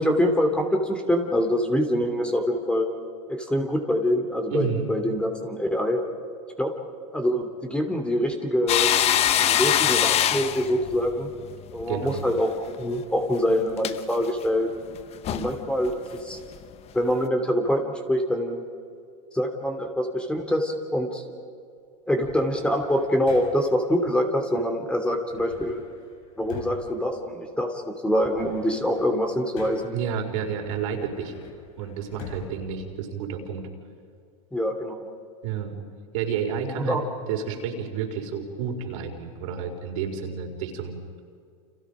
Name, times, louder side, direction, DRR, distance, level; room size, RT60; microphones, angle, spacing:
voice 1, 0.0-2.9 3.3-6.0 6.6-6.7 7.1-8.9 9.4-11.3 11.7-14.7 15.3-16.4 16.9-17.8 18.1-18.6 19.3-21.2 22.1-25.8 26.4-29.9 34.5-35.0 36.8-37.0, equal, 5° left, 4 dB, 3.0 m, -25 dB
voice 2, 4.5-4.9 11.9-12.3 29.9-31.3 31.8-33.6 35.4-35.8 36.1-37.0 37.3-41.0, right 7 dB, 65° right, 2 dB, 4.7 m, -30 dB
sound 1, 8.7-12.2 12.5-12.7 13.8-14.0 14.9-15.0 15.2-15.6 15.8-15.9 16.5-16.6, left 11 dB, 35° left, 1.0 m, -23 dB
sound 2, 22.2-23.9 25.3-27.8 28.1-30.1 30.6-33.6, left 5 dB, 70° left, 5.7 m, -45 dB
30.0 x 28.0 x 5.1 m, 2.3 s
hypercardioid pair, 115°, 18 cm